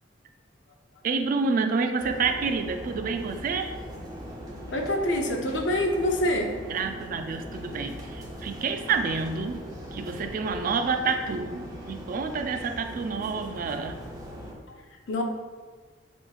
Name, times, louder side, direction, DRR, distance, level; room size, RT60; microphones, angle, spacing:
voice 1, 1.0-3.7 6.7-9.6 9.9-14.0, right 4 dB, 45° right, 7 dB, 0.3 m, -28 dB
sound 1, 2.0-14.5, equal, 20° right, 0.7 m, -40 dB
voice 2, 4.7-6.6 15.1-15.2, left 1 dB, 70° left, 2 dB, 0.7 m, -25 dB
6.7 x 3.0 x 2.4 m, 1.4 s
head